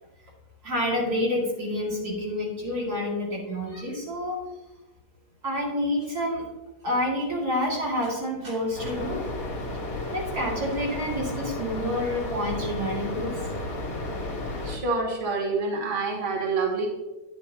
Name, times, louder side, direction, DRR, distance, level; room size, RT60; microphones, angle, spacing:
voice 1, 0.6-4.4 5.4-6.5 6.8-9.2 10.1-13.5, left 1 dB, 70° right, -3 dB, 2.6 m, -28 dB
sound 1, 8.8-14.8, left 2 dB, 60° left, 2.2 m, -33 dB
voice 2, 14.6-16.9, right 3 dB, 35° right, 0 dB, 1.5 m, -27 dB
9.7 x 9.2 x 2.8 m, 1.1 s
omnidirectional pair, 1.8 m